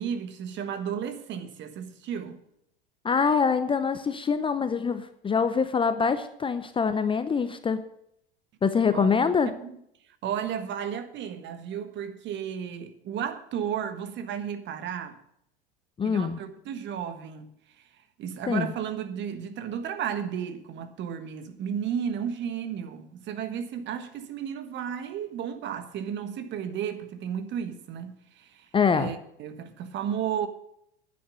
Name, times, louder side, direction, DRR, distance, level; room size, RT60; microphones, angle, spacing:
voice 1, 0.0-2.4 8.9-9.3 9.6-9.8 10.2-15.2 16.0-17.5 18.2-30.5, right 8 dB, 40° right, 1.4 m, -33 dB
voice 2, 3.0-7.8 8.6-9.5 16.0-16.4 18.5-18.7 28.7-29.1, left 5 dB, 20° left, 0.7 m, -24 dB
10.5 x 8.7 x 6.7 m
hypercardioid pair, 85°, 29 cm